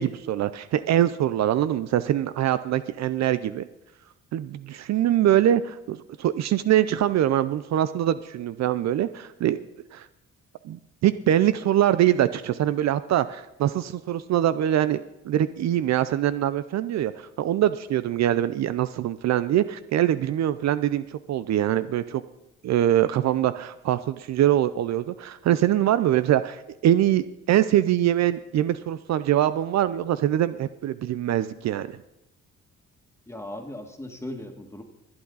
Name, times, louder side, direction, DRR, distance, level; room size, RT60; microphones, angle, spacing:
voice 1, 0.0-3.7 4.3-9.6 9.9-10.1 10.6-22.2 22.6-32.0, right 12 dB, 65° right, 14 dB, 0.5 m, -23 dB
voice 2, 33.3-34.8, left 1 dB, 10° left, 3 dB, 2.0 m, -37 dB
22.0 x 8.6 x 4.0 m, 0.88 s
cardioid pair, 90°, 30 cm